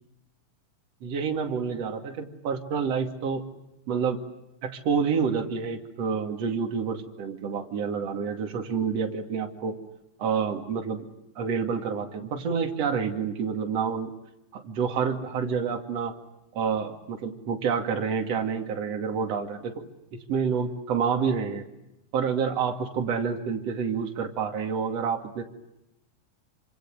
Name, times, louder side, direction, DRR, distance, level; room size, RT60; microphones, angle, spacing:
voice 1, 1.0-3.4 3.9-4.2 4.6-9.8 10.2-11.1 11.4-14.1 14.5-16.2 16.5-19.8 20.3-21.6 22.1-25.4, right 6 dB, 55° right, 4 dB, 3.4 m, -28 dB
28.5 x 26.0 x 7.7 m, 0.88 s
omnidirectional pair, 3.5 m